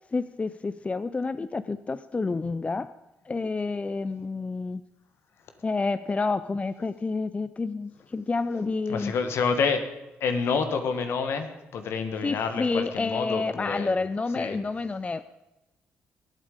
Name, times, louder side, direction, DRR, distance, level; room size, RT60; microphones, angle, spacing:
voice 1, 0.1-2.9 3.3-4.8 5.6-9.1 12.2-15.2, left 3 dB, 30° left, 14 dB, 0.5 m, -29 dB
voice 2, 8.9-9.8 10.2-13.9 14.4-14.6, left 5 dB, 70° left, 7 dB, 1.9 m, -28 dB
22.0 x 8.7 x 5.1 m, 1.0 s
hypercardioid pair, 50°, 4 cm